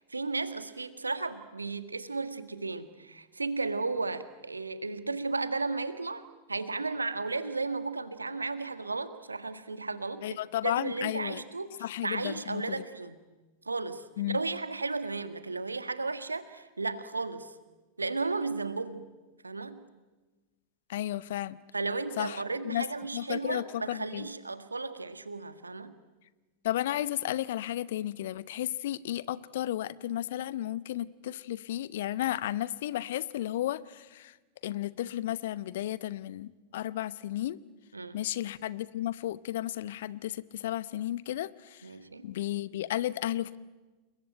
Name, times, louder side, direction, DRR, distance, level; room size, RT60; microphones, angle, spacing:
voice 1, 0.0-6.2 6.5-10.4 10.6-13.2 13.6-17.5 18.0-19.0 19.4-19.8 21.7-25.9 37.9-38.2 41.8-42.3, right 3 dB, 80° right, 11 dB, 1.6 m, -34 dB
voice 2, 10.2-11.4 11.8-12.8 14.2-14.4 20.9-21.6 22.2-22.9 23.1-24.3 26.6-34.4 34.6-37.6 38.1-41.9 42.2-43.6, left 13 dB, 55° left, 18 dB, 0.9 m, -33 dB
29.5 x 21.5 x 9.1 m, 1.2 s
figure-of-eight pair, 90°, 0 cm